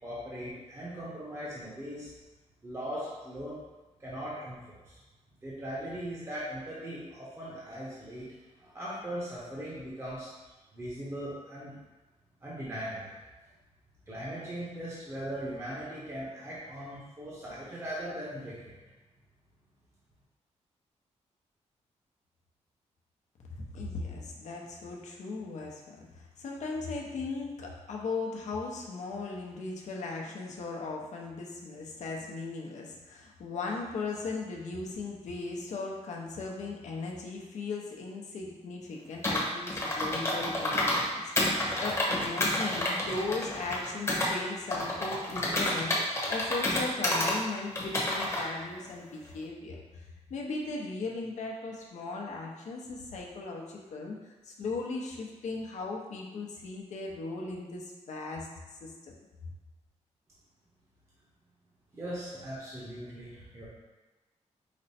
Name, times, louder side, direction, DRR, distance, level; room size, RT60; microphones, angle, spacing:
voice 1, 0.0-2.1 2.6-3.6 4.0-5.0 5.4-8.3 8.6-11.7 12.4-13.1 14.1-18.8 61.9-63.7, equal, 20° right, -8 dB, 0.9 m, -39 dB
voice 2, 23.5-54.2 54.4-58.5 58.8-59.1 59.4-59.5, left 3 dB, 80° left, -1 dB, 0.7 m, -38 dB
Computer keyboard, 39.2-41.0 41.4-44.3 44.7-47.4 47.8-48.4, left 1 dB, 20° left, 0.9 m, -29 dB
5.1 x 2.1 x 4.1 m, 1.1 s
wide cardioid pair, 145°, 12 cm